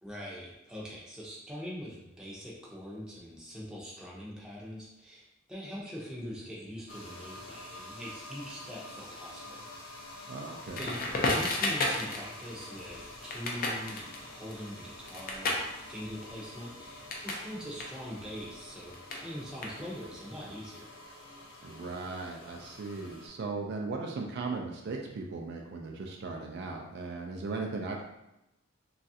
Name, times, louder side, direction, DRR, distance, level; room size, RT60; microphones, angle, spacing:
voice 1, 0.0-9.7 10.8-20.9, equal, 5° right, -5 dB, 0.6 m, -43 dB
sound 1, 6.9-23.3, left 1 dB, 75° left, 0.7 m, -48 dB
voice 2, 10.3-10.9 21.6-28.0, right 3 dB, 55° right, 1 dB, 0.3 m, -37 dB
Crackle, 10.7-17.5 17.7-20.2, left 2 dB, 45° left, 0.5 m, -34 dB
3.1 x 2.4 x 2.7 m, 0.91 s
head